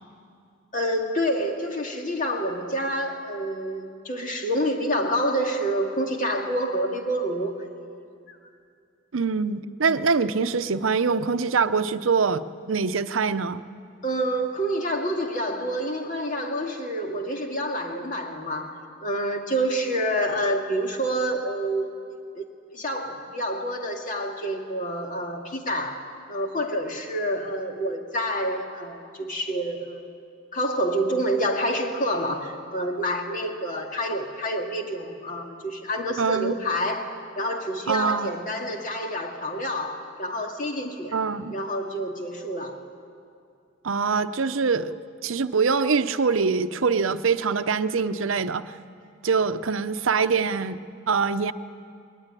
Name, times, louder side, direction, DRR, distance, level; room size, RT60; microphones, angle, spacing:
voice 1, 0.7-7.6 8.3-8.4 14.0-21.9 22.4-30.1 30.5-41.2 41.5-42.8, equal, 40° left, 2 dB, 2.1 m, -28 dB
voice 2, 9.1-13.6 36.2-36.5 37.9-38.3 41.1-41.5 43.8-44.9 45.2-48.7 49.2-50.8 51.1-51.5, right 5 dB, 90° right, 12 dB, 0.7 m, -24 dB
20.5 x 19.0 x 9.9 m, 2.4 s
head